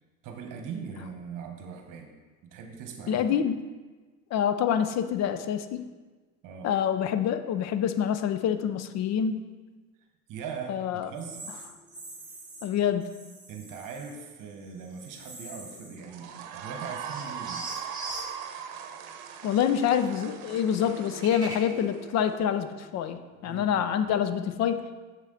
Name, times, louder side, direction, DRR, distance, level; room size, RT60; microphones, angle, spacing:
voice 1, 0.2-2.1 2.4-3.3 6.4-6.7 10.3-11.6 13.5-17.7 23.4-23.8, right 6 dB, 45° right, 4 dB, 1.3 m, -40 dB
voice 2, 3.1-3.6 4.3-5.9 6.6-9.5 10.7-11.1 12.6-13.1 19.4-25.0, left 8 dB, 40° left, 11 dB, 0.6 m, -26 dB
sound 1, 11.1-12.7 13.0-14.1 14.5-16.1 16.4-16.5 17.0-24.4, right 2 dB, 10° right, 2.4 m, -45 dB
sound 2, 16.0-22.3, right 8 dB, 65° right, 0.9 m, -40 dB
7.3 x 7.1 x 4.0 m, 1.3 s
hypercardioid pair, 85°, 43 cm